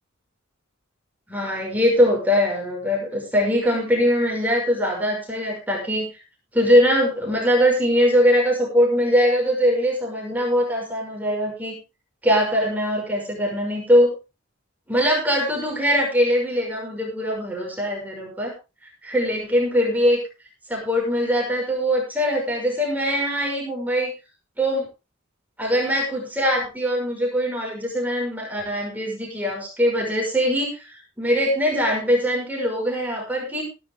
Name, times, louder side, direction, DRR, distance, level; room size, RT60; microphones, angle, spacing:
voice 1, 1.3-6.1 6.5-11.8 12.2-14.1 14.9-18.5 19.0-20.2 20.7-24.1 24.6-24.9 25.6-33.6, equal, 10° right, -1 dB, 5.7 m, -22 dB
15.5 x 12.0 x 3.6 m, 0.29 s
head